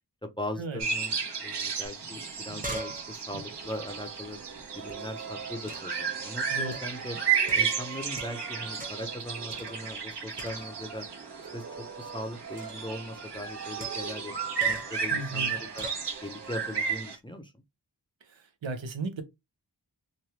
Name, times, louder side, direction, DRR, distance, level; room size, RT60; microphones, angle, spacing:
voice 1, 0.2-1.1 1.4-4.4 4.7-7.2 7.5-11.1 11.5-14.3 14.6-15.9 16.2-17.5, left 1 dB, 10° left, 0.5 m, -39 dB
sound 1, 0.8-17.1, right 6 dB, 65° right, 1.1 m, -33 dB
sound 2, 1.8-1.9 2.2-4.9 5.7-6.1 6.7-7.0 7.5-8.5 8.8-9.2 9.5-10.1 10.4-11.0 12.6-12.9 13.8-14.2 14.6-15.0 15.8-16.1, right 1 dB, 20° right, 0.9 m, -43 dB
Singing, 3.3-17.0, right 6 dB, 35° right, 0.5 m, -45 dB
voice 2, 15.1-15.5 18.3-19.2, right 3 dB, 80° right, 0.8 m, -35 dB
3.1 x 2.3 x 2.8 m
wide cardioid pair, 55°, 44 cm